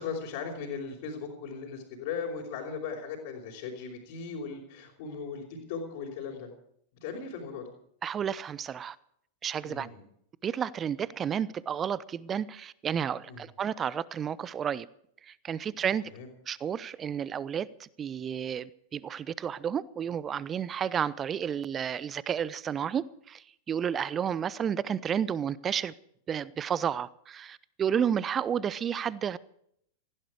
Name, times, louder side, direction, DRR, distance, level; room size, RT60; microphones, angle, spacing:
voice 1, 0.0-6.5 7.0-7.7 9.6-10.0 13.3-13.4 15.7-15.8 16.1-16.3, left 5 dB, 50° left, 4.4 m, -38 dB
voice 2, 8.0-9.0 9.4-9.9 10.4-14.9 15.2-16.1 16.5-25.9 26.3-29.4, right 8 dB, 25° right, 0.7 m, -31 dB
18.5 x 15.5 x 4.8 m
figure-of-eight pair, 90°, 0 cm